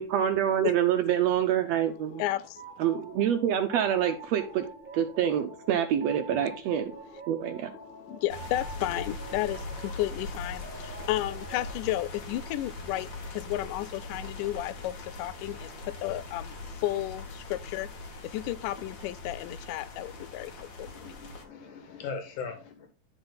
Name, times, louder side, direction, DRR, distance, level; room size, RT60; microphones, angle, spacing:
voice 1, 0.0-2.2 2.8-4.6 4.9-6.9 7.3-7.7, right 10 dB, 75° right, 1.6 m, -26 dB
voice 2, 2.1-2.7 7.7-17.9 18.2-21.1, left 15 dB, 85° left, 2.1 m, -33 dB
sound 1, 2.5-11.8, right 3 dB, 10° right, 0.5 m, -46 dB
sound 2, 8.3-21.4, left 2 dB, 50° left, 1.4 m, -41 dB
voice 3, 20.9-22.9, left 5 dB, 70° left, 2.8 m, -39 dB
11.5 x 4.0 x 3.9 m
omnidirectional pair, 3.7 m